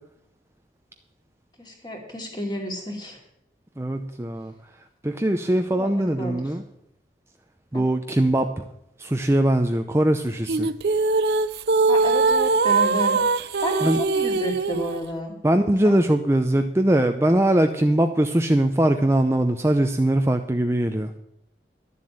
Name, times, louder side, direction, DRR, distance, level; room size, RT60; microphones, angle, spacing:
voice 1, 1.6-3.2 5.7-6.4 7.7-7.9 11.8-13.2 13.6-15.4 15.8-16.0, equal, 25° left, 1 dB, 2.6 m, -31 dB
voice 2, 3.8-4.5 5.0-6.6 7.7-8.6 9.0-10.7 13.8-14.0 15.4-21.1, right 1 dB, 15° right, 6 dB, 0.5 m, -21 dB
sound 1, 10.5-15.0, right 3 dB, 60° right, 0.5 m, -21 dB
12.0 x 7.5 x 8.7 m, 0.77 s
head